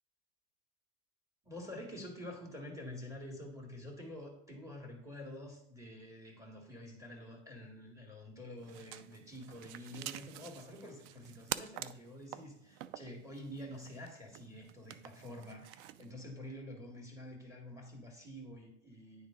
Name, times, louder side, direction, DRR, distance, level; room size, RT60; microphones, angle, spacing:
voice 1, 1.4-19.3, left 1 dB, 10° right, 1 dB, 2.1 m, -48 dB
sound 1, 8.6-16.1, right 13 dB, 50° right, 0.4 m, -47 dB
9.9 x 3.6 x 3.8 m, 0.75 s
hypercardioid pair, 105°, 38 cm